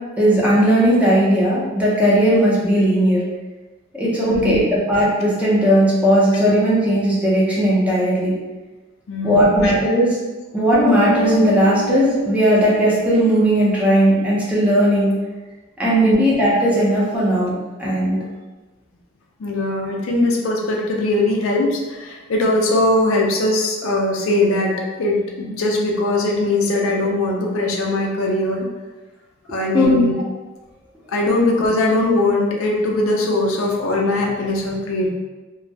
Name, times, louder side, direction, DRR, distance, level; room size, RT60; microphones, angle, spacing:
voice 1, 0.2-3.2 3.9-8.3 9.2-10.2 10.5-15.1 15.8-17.5 17.8-18.2 29.7-30.0, equal, 5° right, -7 dB, 0.5 m, -17 dB
voice 2, 4.3-4.6 9.1-9.7 16.0-16.2 19.4-24.7 25.0-28.7 29.5-30.1 31.1-35.1, left 2 dB, 85° left, 0 dB, 0.4 m, -20 dB
sound 1, 10.7-14.1, equal, 70° right, 0.6 m, -28 dB
2.2 x 2.0 x 2.7 m, 1.2 s
head